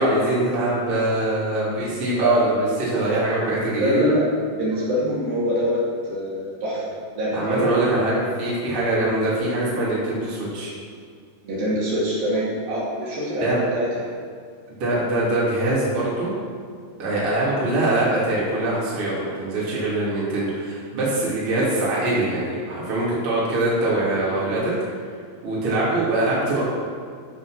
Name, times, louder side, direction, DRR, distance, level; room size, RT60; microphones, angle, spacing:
voice 1, 0.0-4.1 7.3-10.7 13.4-13.6 14.8-16.3 17.0-24.7 25.4-26.6, right 2 dB, 35° right, -7 dB, 3.5 m, -23 dB
voice 2, 3.7-4.2 4.5-5.8 6.0-7.8 11.4-13.9, equal, 60° right, -8 dB, 4.1 m, -24 dB
14.0 x 5.3 x 6.5 m, 2.1 s
omnidirectional pair, 4.8 m